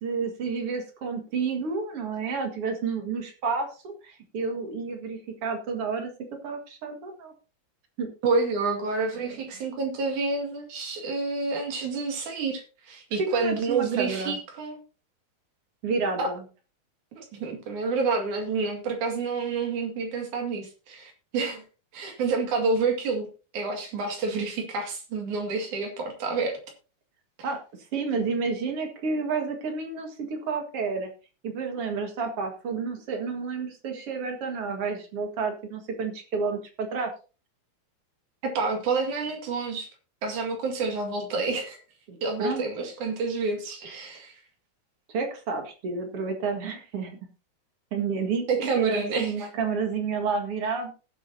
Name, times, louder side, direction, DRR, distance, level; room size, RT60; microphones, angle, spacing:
voice 1, 0.0-6.1 6.4-7.3 8.0-8.1 9.2-9.4 13.2-14.4 15.8-16.4 27.4-27.6 27.9-31.1 31.4-37.1 42.1-42.9 45.1-47.2 47.9-50.9, right 5 dB, 55° right, 5 dB, 2.6 m, -30 dB
voice 2, 8.2-14.8 16.2-16.3 17.2-21.6 21.9-23.3 23.5-26.6 27.4-27.5 38.4-39.9 40.2-41.8 42.2-44.4 48.5-49.5, right 4 dB, 90° right, 3 dB, 3.7 m, -28 dB
19.0 x 7.6 x 2.8 m, 0.34 s
omnidirectional pair, 3.4 m